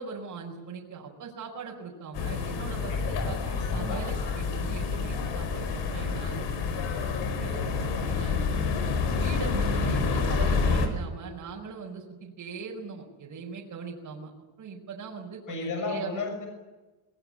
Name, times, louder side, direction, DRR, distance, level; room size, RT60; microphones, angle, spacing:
voice 1, 0.0-6.7 7.2-8.7 9.2-14.3 14.6-16.2, right 5 dB, 40° right, -2 dB, 4.9 m, -40 dB
sound 1, 2.1-10.9, left 4 dB, 60° left, 4.9 m, -28 dB
voice 2, 2.9-4.0 7.9-8.2 15.5-16.5, left 4 dB, 40° left, 4 dB, 6.7 m, -35 dB
22.5 x 21.5 x 8.7 m, 1.2 s
cardioid pair, 165°, 48 cm